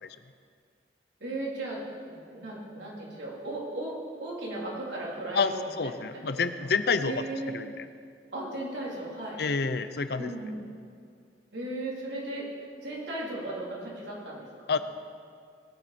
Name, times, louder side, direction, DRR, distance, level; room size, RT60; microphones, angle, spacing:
voice 1, 1.2-5.6 6.1-6.3 7.0-7.5 8.3-9.4 10.2-10.6 11.5-12.4 12.8-14.5, right 2 dB, 90° right, -5 dB, 3.7 m, -36 dB
voice 2, 5.3-7.3 7.5-7.9 9.4-10.3 14.7-14.8, left 5 dB, 65° left, 11 dB, 0.6 m, -28 dB
19.5 x 9.1 x 4.3 m, 2.2 s
head